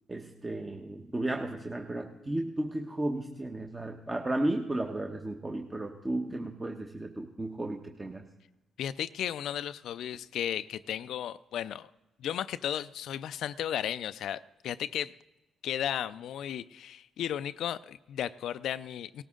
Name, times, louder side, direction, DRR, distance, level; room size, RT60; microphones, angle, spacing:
voice 1, 0.1-8.3, right 1 dB, 20° right, 3 dB, 1.0 m, -34 dB
voice 2, 8.8-11.9 12.2-15.1 15.6-19.2, left 10 dB, 80° left, 14 dB, 0.4 m, -34 dB
17.5 x 13.5 x 3.7 m, 1.0 s
cardioid pair, 75°, 0 cm